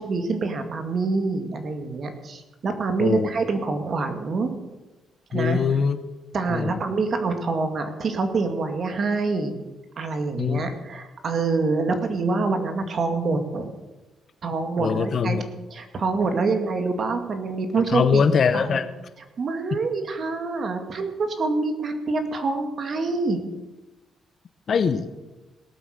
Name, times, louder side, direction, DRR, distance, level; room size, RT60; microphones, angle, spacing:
voice 1, 0.0-4.5 5.3-5.6 6.3-9.6 10.0-13.7 14.4-15.4 15.7-18.2 18.5-18.8 19.4-23.4, right 3 dB, 50° right, 6 dB, 2.0 m, -26 dB
voice 2, 5.3-6.0 6.5-6.8 10.4-10.7 14.8-15.4 17.9-18.9 19.7-19.8 24.7-25.1, left 6 dB, 50° left, 12 dB, 0.9 m, -22 dB
18.0 x 8.1 x 6.6 m, 1.1 s
cardioid pair, 100°, 0 cm